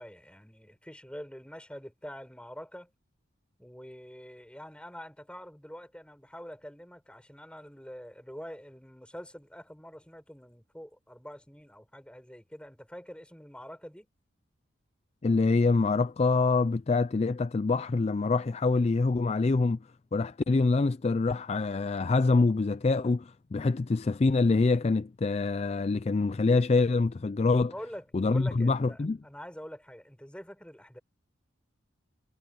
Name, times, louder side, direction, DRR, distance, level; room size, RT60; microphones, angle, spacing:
voice 1, 0.0-2.9 3.6-14.1 27.7-31.0, equal, 5° left, 5.9 m, -45 dB
voice 2, 15.2-19.8 20.1-27.7 28.1-29.2, left 3 dB, 30° left, 0.4 m, -25 dB
head